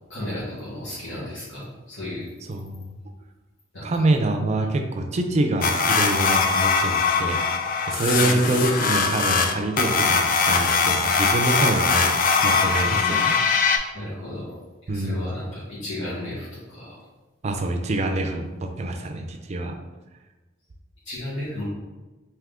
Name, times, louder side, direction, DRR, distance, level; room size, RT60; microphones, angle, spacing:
voice 1, 0.1-2.3 3.7-3.9 4.6-4.7 8.2-8.4 12.8-13.0 13.9-14.6 14.9-17.0 21.0-21.6, left 1 dB, 70° left, -12 dB, 1.3 m, -34 dB
voice 2, 2.5-2.9 3.8-7.4 7.9-12.2 12.4-13.4 14.9-15.4 17.4-19.7, right 2 dB, 35° right, 4 dB, 0.4 m, -25 dB
sound 1, 5.6-13.8, left 5 dB, 45° left, 0.3 m, -21 dB
3.5 x 2.8 x 3.5 m, 1.2 s
head